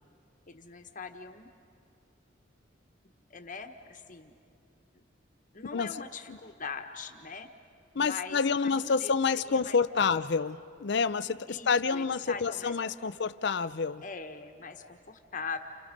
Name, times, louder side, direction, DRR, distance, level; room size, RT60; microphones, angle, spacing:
voice 1, 0.5-1.5 3.3-4.3 5.5-7.5 7.9-9.1 9.5-10.1 11.5-12.7 13.0-13.2 14.0-15.6, left 5 dB, 45° left, 1.4 m, -41 dB
voice 2, 5.7-6.4 7.9-14.0, left 5 dB, 60° left, 0.6 m, -28 dB
29.5 x 29.0 x 5.3 m
head